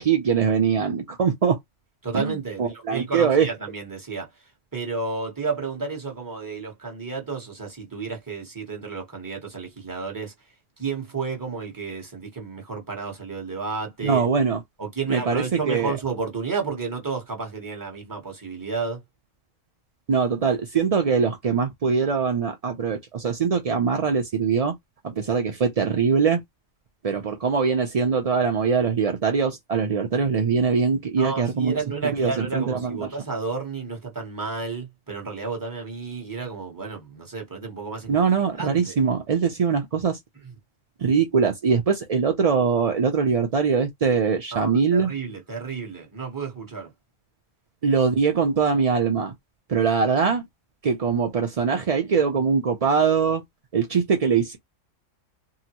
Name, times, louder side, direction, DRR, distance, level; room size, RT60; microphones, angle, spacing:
voice 1, 0.0-1.6 2.1-2.3 2.6-3.5 14.0-14.6 15.1-15.9 20.1-24.7 25.0-26.4 27.0-31.8 32.1-33.0 38.1-40.2 41.0-45.1 47.8-49.3 49.7-50.4 50.8-53.4 53.7-54.6, right 6 dB, 55° right, 0.4 m, -22 dB
voice 2, 2.0-10.3 10.8-14.3 14.8-19.0 31.2-38.2 38.6-38.9 40.4-40.5 44.5-46.9, right 4 dB, 15° right, 0.9 m, -31 dB
3.7 x 2.0 x 2.9 m
omnidirectional pair, 1.3 m